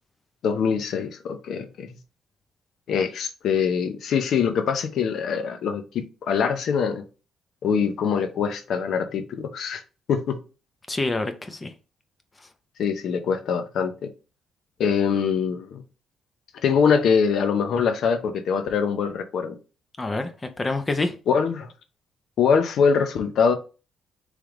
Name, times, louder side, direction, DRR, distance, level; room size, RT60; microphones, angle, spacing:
voice 1, 0.4-1.9 2.9-7.0 7.6-9.8 10.1-10.4 12.8-14.1 14.8-15.8 16.6-19.6 21.3-21.7 22.4-23.5, left 6 dB, 70° left, 0.7 m, -23 dB
voice 2, 10.9-11.7 12.4-12.5 20.0-21.2, left 2 dB, 25° left, 0.6 m, -27 dB
3.4 x 3.2 x 3.6 m
cardioid pair, 90°, 0 cm